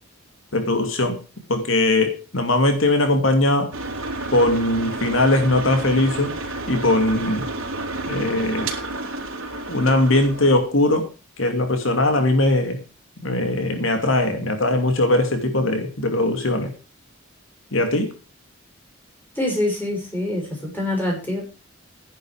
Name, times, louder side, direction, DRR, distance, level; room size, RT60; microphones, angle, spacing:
voice 1, 0.5-1.2 1.5-3.7 4.3-6.3 6.7-7.4 8.1-8.7 9.7-11.1 11.4-12.8 13.2-16.7 17.7-18.1, left 2 dB, 70° left, 6 dB, 2.5 m, -20 dB
sound 1, 3.7-10.6, right 2 dB, 85° right, 3.8 m, -30 dB
voice 2, 19.3-21.4, left 1 dB, 10° left, 0 dB, 6.4 m, -25 dB
12.0 x 11.0 x 4.9 m, 0.34 s
head